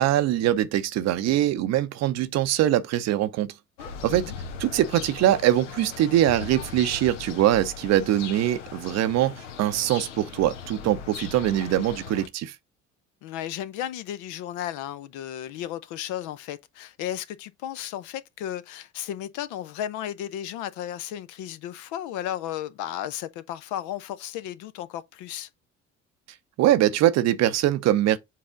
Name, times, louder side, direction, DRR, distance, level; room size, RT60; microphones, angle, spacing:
voice 1, 0.0-3.5 4.0-4.3 4.6-9.3 9.6-12.5 26.6-28.2, right 13 dB, 45° right, 0.7 m, -22 dB
sound 1, 3.8-12.3, left 6 dB, 70° left, 1.0 m, -39 dB
voice 2, 13.2-25.5, left 11 dB, 50° left, 0.7 m, -34 dB
7.5 x 4.1 x 3.7 m
figure-of-eight pair, 55°, 39 cm